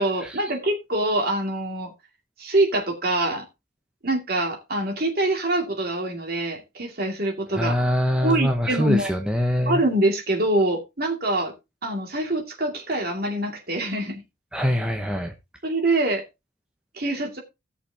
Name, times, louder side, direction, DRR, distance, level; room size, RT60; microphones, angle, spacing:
voice 1, 0.0-1.9 2.4-3.5 4.0-7.8 8.2-9.1 9.7-11.5 11.8-14.2 15.6-16.2 16.9-17.4, right 1 dB, 50° right, 2.4 m, -24 dB
voice 2, 7.6-9.8 14.5-15.3, equal, 5° right, 0.9 m, -23 dB
16.0 x 6.7 x 2.8 m
head